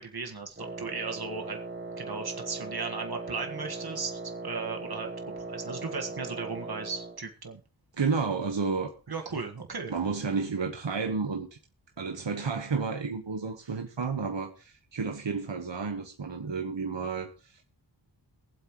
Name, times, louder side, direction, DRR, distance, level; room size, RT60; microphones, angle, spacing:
voice 1, 0.0-1.6 2.0-5.1 5.4-7.6 9.1-9.9, right 4 dB, 55° right, 1.6 m, -36 dB
Wind instrument woodwind instrument, 0.6-7.2, right 3 dB, 25° right, 1.6 m, -39 dB
voice 2, 8.0-9.1 9.9-11.6 12.0-17.6, right 5 dB, 70° right, 1.3 m, -31 dB
22.0 x 7.8 x 3.1 m
wide cardioid pair, 65°, 45 cm